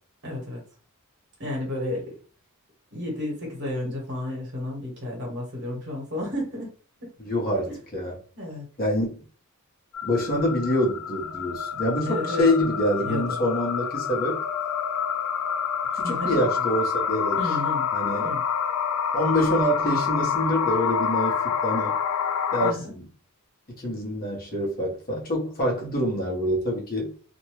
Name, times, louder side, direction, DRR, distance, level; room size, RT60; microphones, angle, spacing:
voice 1, 0.2-0.6 1.4-2.1 2.9-6.7 7.0-7.1 7.7-7.8 8.3-8.7 11.8-12.4 13.0-13.4 16.0-16.6 17.4-17.9 18.2-18.4 22.6-22.8, left 1 dB, 50° right, 1.2 m, -32 dB
voice 2, 7.2-8.2 8.8-9.3 10.0-14.4 15.9-17.4 17.9-18.3 19.1-21.9 22.5-23.1 23.8-27.1, equal, 40° left, 0.9 m, -26 dB
sound 1, 9.9-22.7, left 7 dB, 70° left, 0.3 m, -27 dB
2.6 x 2.2 x 3.0 m
head